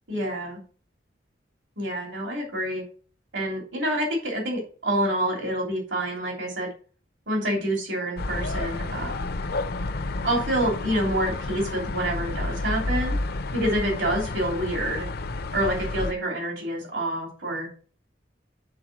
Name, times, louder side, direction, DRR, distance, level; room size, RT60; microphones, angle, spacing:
voice 1, 0.1-0.6 1.8-2.8 3.3-6.7 7.3-9.1 10.2-13.2 13.5-15.1 15.5-17.7, right 1 dB, 80° right, 0 dB, 3.1 m, -27 dB
sound 1, 8.2-16.1, left 2 dB, 55° left, 0.6 m, -30 dB
8.7 x 4.6 x 6.0 m, 0.40 s
head